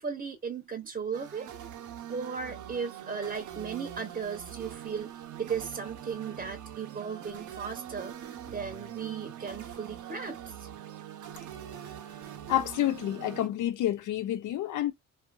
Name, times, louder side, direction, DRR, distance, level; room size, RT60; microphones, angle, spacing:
voice 1, 0.0-1.5 2.1-5.1 5.4-10.7, right 6 dB, 30° right, 0.7 m, -36 dB
sound 1, 1.1-13.5, right 10 dB, 75° right, 0.8 m, -43 dB
voice 2, 12.5-14.9, left 13 dB, 80° left, 0.7 m, -29 dB
2.7 x 2.6 x 2.3 m
cardioid pair, 90°, 30 cm